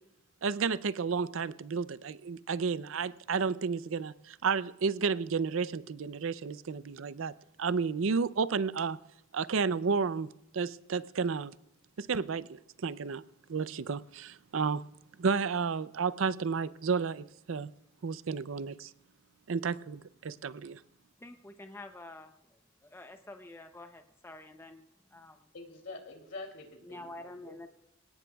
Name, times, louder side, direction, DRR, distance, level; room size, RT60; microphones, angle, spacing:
voice 1, 0.4-7.3 7.6-9.0 9.3-10.3 10.5-11.5 12.0-13.2 13.5-14.8 15.2-17.7 18.0-18.9 19.5-20.8, right 5 dB, 70° right, 15 dB, 0.5 m, -32 dB
voice 2, 21.2-22.3 22.8-24.8 25.1-25.4 26.8-27.7, left 2 dB, 10° left, 6 dB, 0.7 m, -47 dB
voice 3, 25.5-27.7, left 3 dB, 65° left, 3 dB, 3.0 m, -46 dB
25.5 x 18.0 x 2.3 m, 0.81 s
head